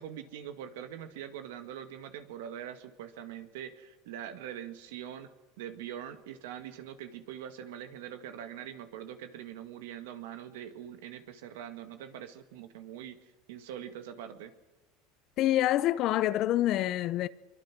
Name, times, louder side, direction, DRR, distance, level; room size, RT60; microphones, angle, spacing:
voice 1, 0.0-5.3 5.6-13.2 13.5-14.5, right 10 dB, 80° right, 2.0 m, -43 dB
voice 2, 15.4-17.3, left 14 dB, 50° left, 0.8 m, -26 dB
23.5 x 23.0 x 6.2 m
supercardioid pair, 120°, 0 cm